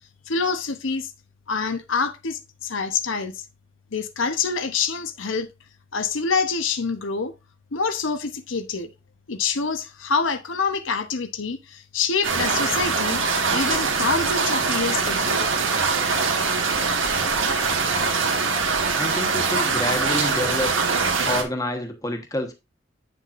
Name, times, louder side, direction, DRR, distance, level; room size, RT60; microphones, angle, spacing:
voice 1, 0.3-1.1 1.5-3.3 3.9-5.5 5.9-7.3 7.7-8.9 9.3-13.2 13.5-15.5, left 5 dB, 85° left, 0.9 m, -26 dB
sound 1, 12.2-21.4, right 4 dB, 85° right, 1.6 m, -23 dB
voice 2, 18.9-20.7 21.2-22.5, left 1 dB, 20° left, 1.2 m, -28 dB
8.4 x 7.0 x 2.6 m
head